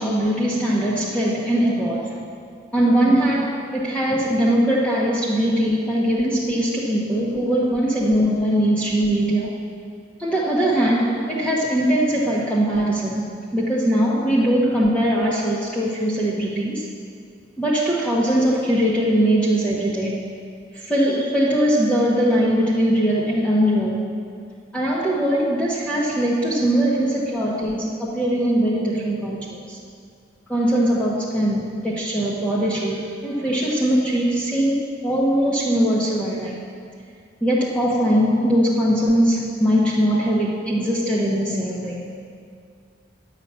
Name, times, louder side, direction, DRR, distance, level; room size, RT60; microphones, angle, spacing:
voice 1, 0.0-2.1 2.7-9.6 10.2-16.9 17.6-20.2 20.7-24.1 24.7-29.8 30.5-36.5 37.4-42.1, equal, 5° left, -6 dB, 0.9 m, -21 dB
9.8 x 5.8 x 8.0 m, 2.3 s
head